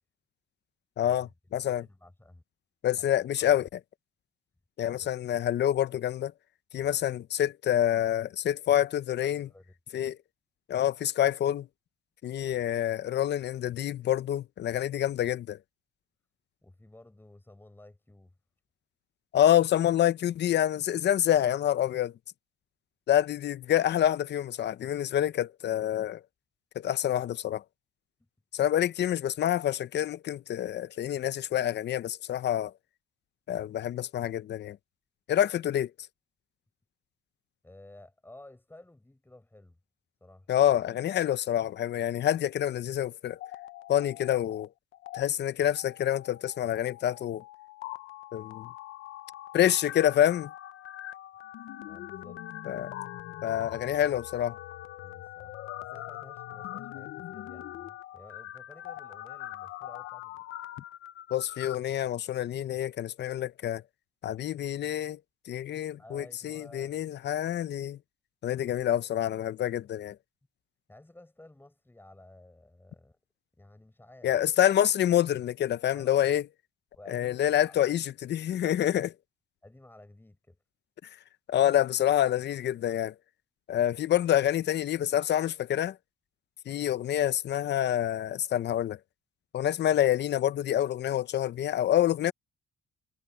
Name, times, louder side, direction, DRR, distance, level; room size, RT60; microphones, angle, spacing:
voice 1, 1.0-1.3 1.5-1.8 2.8-3.7 4.8-6.3 6.7-9.5 9.9-10.2 10.7-11.7 12.2-15.6 19.3-22.1 23.1-26.2 26.8-27.6 28.5-32.7 33.5-34.8 35.3-35.9 40.5-43.4 43.9-44.7 45.1-47.4 48.3-48.7 49.5-50.5 52.7-52.9 53.4-54.6 61.3-63.8 64.2-65.2 65.5-68.0 68.4-70.2 74.2-76.4 77.1-79.1 81.5-83.1 83.7-86.0 86.7-89.0 89.5-92.3, left 11 dB, 60° left, 0.7 m, -27 dB
voice 2, 1.6-2.4 3.1-3.7 5.0-5.1 6.8-7.0 9.2-9.7 16.6-18.3 37.6-39.8 40.2-40.5 51.8-52.4 53.4-53.8 55.0-60.5 66.0-67.0 70.9-73.2 73.6-74.5 75.9-76.4 76.9-78.1 79.6-80.6, left 1 dB, 10° left, 5.4 m, -54 dB
sound 1, 43.3-44.7 44.9-45.2 45.7-61.8, left 14 dB, 90° left, 0.8 m, -43 dB
cardioid pair, 90°, 20 cm